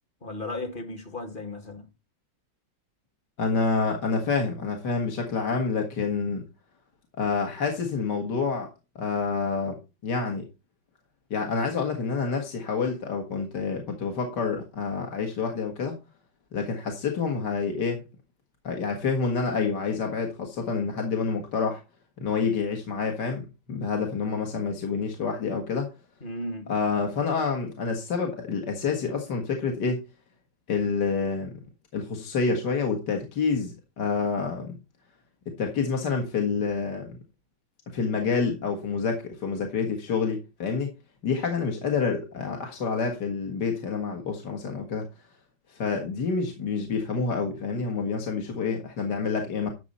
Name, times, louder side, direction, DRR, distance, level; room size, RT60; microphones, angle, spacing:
voice 1, 0.2-1.9 26.2-26.7, left 2 dB, 30° left, 1.5 m, -35 dB
voice 2, 3.4-6.4 7.2-8.7 9.0-10.5 11.3-16.0 16.5-18.0 18.6-21.8 22.2-25.9 26.7-30.0 30.7-31.5 31.9-34.8 35.5-37.2 37.9-40.9 41.2-45.1 45.7-49.7, left 5 dB, 60° left, 2.3 m, -28 dB
12.0 x 7.0 x 4.2 m
omnidirectional pair, 2.1 m